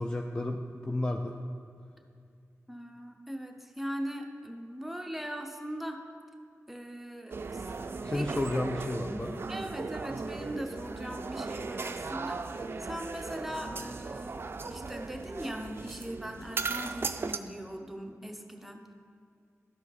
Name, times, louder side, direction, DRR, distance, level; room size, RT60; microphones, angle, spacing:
voice 1, 0.0-1.4 8.0-9.4, left 1 dB, 15° left, 3 dB, 0.4 m, -32 dB
voice 2, 2.7-6.0 6.7-7.6 8.1-8.3 9.5-18.9, equal, 5° right, 3 dB, 0.8 m, -40 dB
sound 1, 7.3-17.4, right 4 dB, 45° right, 0.4 m, -37 dB
12.0 x 4.9 x 4.1 m, 2.3 s
cardioid pair, 70°, 5 cm